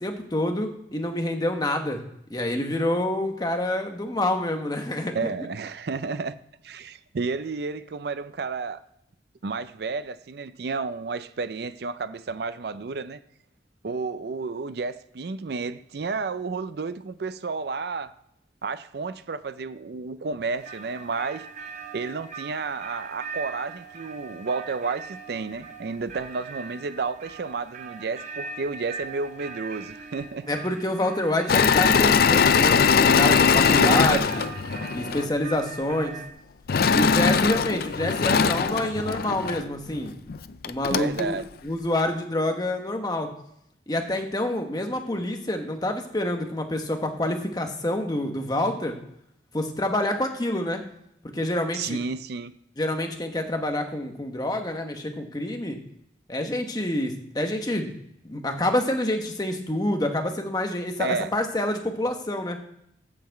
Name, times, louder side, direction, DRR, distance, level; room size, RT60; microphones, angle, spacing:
voice 1, 0.0-2.0 2.3-5.3 30.5-34.5 34.9-36.2 36.9-40.1 40.6-41.4 41.6-43.3 43.9-49.0 49.5-50.8 51.3-52.0 52.8-55.8 56.3-57.9 58.2-62.6, left 1 dB, 20° left, 1.1 m, -27 dB
voice 2, 5.1-6.4 6.6-8.8 9.4-13.2 13.8-18.1 18.6-21.5 21.9-30.4 33.7-34.2 40.9-41.4 51.7-52.5 61.0-61.3, right 4 dB, 60° right, 0.5 m, -31 dB
sound 1, 20.5-36.3, right 5 dB, 40° right, 0.8 m, -41 dB
Engine / Mechanisms, 31.5-35.3 36.7-39.6 40.3-40.4 40.6-41.2, left 6 dB, 55° left, 0.4 m, -21 dB
7.3 x 5.8 x 7.7 m
head